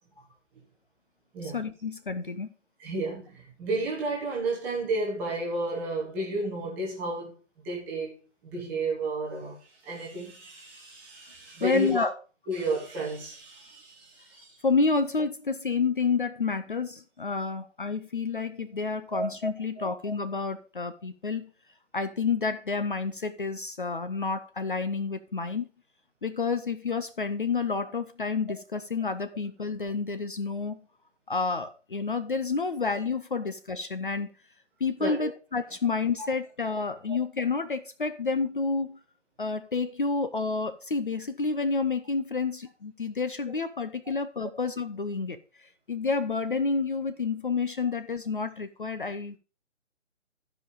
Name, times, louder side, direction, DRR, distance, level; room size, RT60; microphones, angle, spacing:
voice 1, 1.4-2.5 11.6-12.1 14.6-21.5 21.9-25.7 26.2-30.8 31.3-34.3 34.8-39.0 39.4-49.4, left 4 dB, 45° left, 0.7 m, -29 dB
voice 2, 2.8-7.3 7.6-8.1 8.4-12.1 12.5-14.6 19.1-19.3 19.8-19.9 35.0-35.3 37.1-37.2, right 2 dB, 5° right, 0.9 m, -32 dB
13.0 x 5.1 x 5.1 m
figure-of-eight pair, 145°, 37 cm